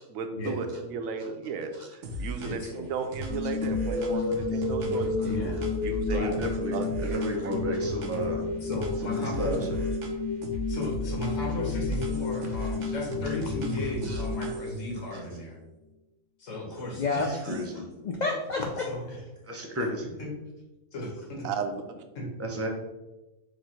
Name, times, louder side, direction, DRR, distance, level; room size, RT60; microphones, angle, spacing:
voice 1, 0.1-5.4 5.8-6.3 6.7-7.2 21.4-22.0, right 5 dB, 90° right, 6 dB, 1.0 m, -34 dB
sound 1, 2.0-2.8 3.1-8.4 8.7-10.2 10.4-14.9, equal, 70° right, 1.0 m, -36 dB
voice 2, 2.4-2.8 4.8-4.9 5.2-5.6 6.1-6.5 8.6-9.5 10.7-15.6 16.4-17.6 18.9-19.2 20.0-20.3 20.9-21.5 22.1-22.3, left 1 dB, 70° left, -1 dB, 1.5 m, -35 dB
sound 2, 3.3-15.3, left 3 dB, 45° right, 1.7 m, -32 dB
voice 3, 4.1-4.5 5.0-5.6 12.4-12.6 12.8-12.9 14.0-14.2 17.0-18.9, left 3 dB, 90° left, 2 dB, 0.4 m, -33 dB
voice 4, 6.2-8.5 9.0-9.8 17.5-17.7 19.5-20.1 22.4-22.7, equal, 20° right, 1 dB, 0.4 m, -33 dB
4.8 x 2.5 x 4.4 m, 1.0 s
omnidirectional pair, 1.4 m